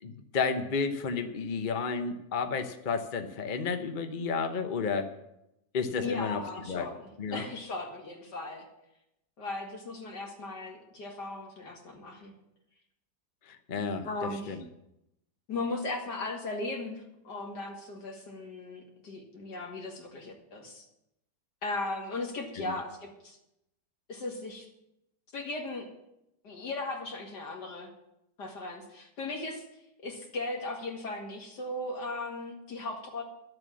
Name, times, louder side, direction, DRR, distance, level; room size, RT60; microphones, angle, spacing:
voice 1, 0.0-5.1 5.7-6.4 6.7-6.9 7.2-7.4 13.5-14.6 22.6-22.7, left 5 dB, 40° left, 7 dB, 0.8 m, -32 dB
voice 2, 6.0-8.7 9.4-12.3 14.0-14.6 15.5-20.9 21.6-23.4 24.1-24.7 25.3-25.9 26.4-27.9 28.4-29.6 30.0-33.2, left 2 dB, 70° left, 1 dB, 2.7 m, -37 dB
12.0 x 7.7 x 7.6 m, 0.85 s
omnidirectional pair, 1.9 m